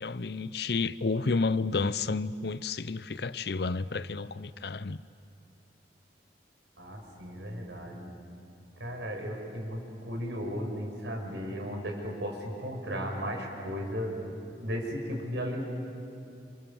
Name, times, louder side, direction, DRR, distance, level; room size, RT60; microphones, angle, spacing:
voice 1, 0.0-5.0, left 4 dB, 65° left, 0.7 m, -31 dB
voice 2, 6.8-8.2 8.8-14.4 14.6-15.6, equal, 80° right, 5.7 m, -35 dB
30.0 x 28.0 x 7.1 m
head